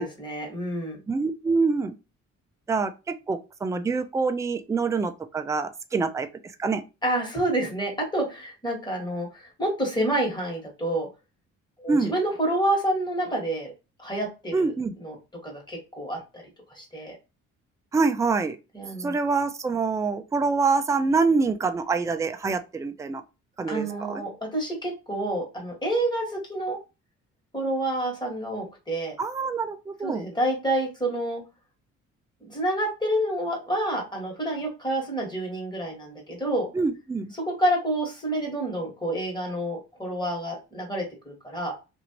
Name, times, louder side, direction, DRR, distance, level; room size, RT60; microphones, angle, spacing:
voice 1, 0.0-1.0 7.0-11.1 11.8-13.7 14.0-14.7 15.0-15.2 15.4-16.4 16.7-17.1 18.7-19.1 23.7-26.8 27.5-29.1 30.0-31.4 32.4-36.7 37.4-41.7, right 1 dB, 15° left, 1.5 m, -28 dB
voice 2, 1.1-2.0 2.7-6.3 6.6-6.8 11.9-12.1 14.5-14.9 17.9-18.6 19.0-23.2 23.6-24.2 29.2-30.3 36.7-37.3, right 4 dB, 10° right, 0.3 m, -25 dB
2.9 x 2.6 x 2.8 m
cardioid pair, 90°, 30 cm